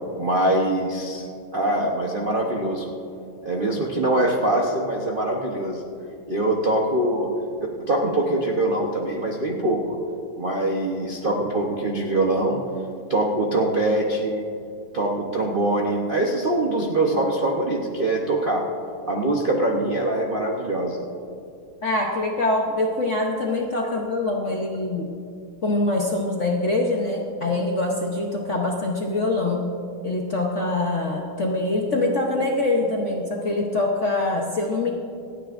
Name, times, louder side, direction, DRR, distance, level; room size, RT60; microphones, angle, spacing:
voice 1, 0.2-1.3 1.5-2.9 3.4-5.8 6.3-7.3 7.9-10.0 10.4-12.6 13.1-14.4 14.9-18.6 19.0-21.0, right 1 dB, 50° right, -1 dB, 0.6 m, -23 dB
voice 2, 21.8-25.1 25.6-29.7 30.0-34.9, left 2 dB, 55° left, 0 dB, 0.9 m, -24 dB
27.5 x 9.5 x 2.5 m, 2.5 s
omnidirectional pair, 2.3 m